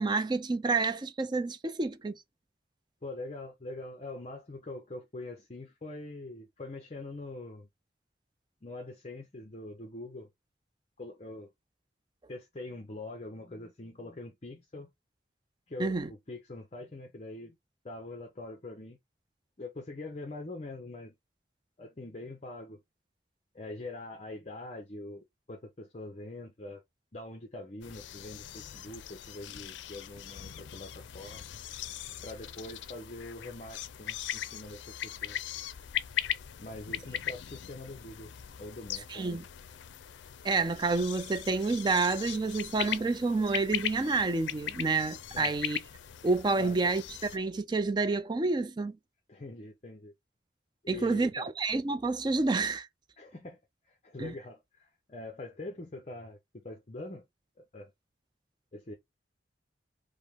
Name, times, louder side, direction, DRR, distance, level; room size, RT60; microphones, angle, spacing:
voice 1, 0.0-2.1 15.8-16.1 39.1-39.4 40.4-45.8 46.2-49.0 50.9-52.9 54.2-54.3, right 3 dB, 25° right, 0.4 m, -29 dB
voice 2, 3.0-7.7 8.6-10.3 11.0-11.5 12.3-14.9 15.7-17.6 17.8-19.0 19.6-21.1 21.8-22.8 23.5-26.8 27.1-31.4 32.2-35.4 36.6-38.3 38.6-39.5 45.3-45.5 46.6-46.8 49.3-50.1 50.8-51.5 53.2-53.6 53.9-57.2 57.6-57.9 58.7-58.9, left 2 dB, 35° left, 0.6 m, -43 dB
sound 1, 27.8-47.4, left 10 dB, 90° left, 0.4 m, -39 dB
5.0 x 2.1 x 3.5 m
head